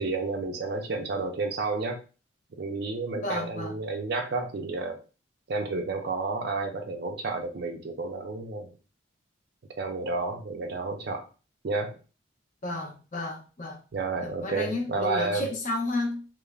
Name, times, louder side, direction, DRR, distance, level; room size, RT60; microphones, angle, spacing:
voice 1, 0.0-2.0 2.6-5.0 5.5-8.7 9.8-11.3 11.6-12.0 13.9-15.5, right 3 dB, 55° right, 4 dB, 0.4 m, -31 dB
voice 2, 3.2-3.8 12.6-13.8 14.2-16.2, left 2 dB, 40° left, 1 dB, 0.6 m, -32 dB
3.1 x 2.0 x 2.3 m, 0.34 s
head